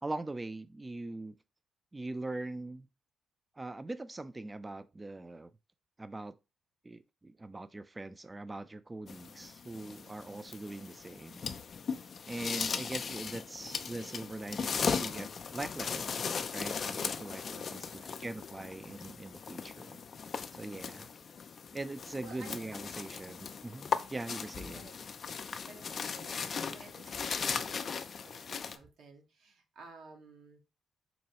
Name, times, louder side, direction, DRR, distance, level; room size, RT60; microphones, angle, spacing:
voice 1, 0.0-1.4 1.9-2.9 3.6-5.5 6.0-6.4 6.8-11.5 12.3-20.0 20.5-21.1 21.7-24.9, right 2 dB, 25° right, 0.3 m, -42 dB
sound 1, 9.1-28.8, left 6 dB, 55° left, 0.3 m, -38 dB
voice 2, 17.5-18.2 22.2-22.7 23.2-23.6 24.7-24.9 25.4-30.6, right 3 dB, 70° right, 0.9 m, -54 dB
4.0 x 2.2 x 2.8 m
supercardioid pair, 50°, 0 cm